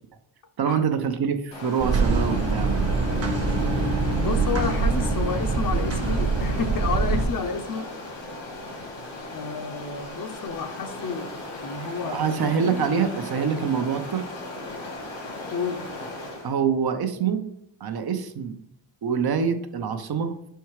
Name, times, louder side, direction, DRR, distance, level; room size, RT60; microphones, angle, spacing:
voice 1, 0.6-2.8 12.0-14.3 16.4-17.4 17.8-18.6 19.0-20.3, right 6 dB, 50° right, 7 dB, 0.7 m, -25 dB
Stream, 1.5-16.6, left 2 dB, 90° left, 2.3 m, -37 dB
sound 1, 1.8-7.2, right 3 dB, 30° right, 1.0 m, -24 dB
voice 2, 4.2-7.9 9.3-11.3 11.6-12.9 15.5-15.9, left 5 dB, 45° left, 8 dB, 0.7 m, -30 dB
5.6 x 4.6 x 4.6 m, 0.71 s
wide cardioid pair, 155°, 47 cm